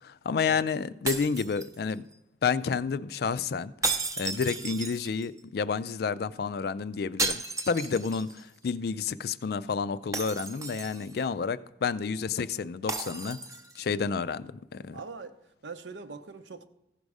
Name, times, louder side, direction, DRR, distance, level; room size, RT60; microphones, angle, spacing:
voice 1, 0.0-2.0 2.4-13.4 13.8-15.0, left 5 dB, 55° left, 0.3 m, -30 dB
sound 1, 1.1-2.1 3.8-5.4 7.2-8.4 8.7-8.8 10.1-11.2 12.9-13.8, right 3 dB, 15° right, 0.6 m, -33 dB
voice 2, 14.9-15.4 15.6-16.6, right 4 dB, 75° right, 0.7 m, -42 dB
15.0 x 5.2 x 4.8 m
head